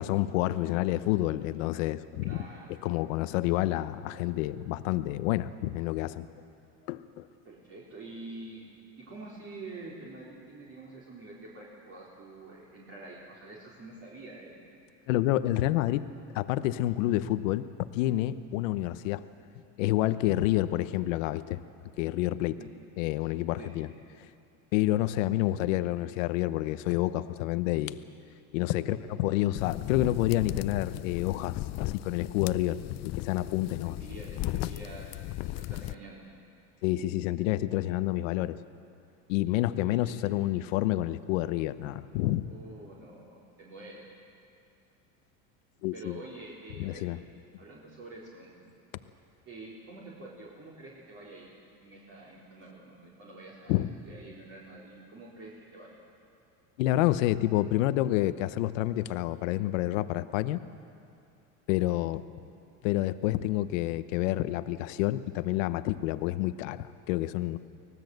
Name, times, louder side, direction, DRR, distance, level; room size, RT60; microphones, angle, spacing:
voice 1, 0.0-2.5 2.8-6.3 6.9-7.3 15.1-16.1 16.3-17.7 17.9-19.2 19.8-21.6 22.0-22.6 23.0-23.9 24.7-28.0 28.5-34.0 34.6-34.7 36.8-38.6 39.3-42.5 45.8-46.2 46.8-47.2 53.7-53.9 56.8-60.6 61.7-62.2 62.8-67.6, left 15 dB, 85° left, 12 dB, 1.0 m, -28 dB
voice 2, 2.2-2.7 7.4-8.7 9.0-14.6 20.4-20.6 22.5-22.7 23.6-23.7 28.8-29.4 33.9-35.2 35.6-36.3 39.9-40.1 42.4-44.0 45.9-47.0 47.6-48.5 49.5-51.5 51.8-56.0, right 2 dB, 40° right, -5 dB, 4.3 m, -47 dB
sound 1, 29.6-35.9, left 16 dB, 45° left, 0.6 m, -36 dB
25.0 x 19.0 x 8.0 m, 2.5 s
supercardioid pair, 125°, 38 cm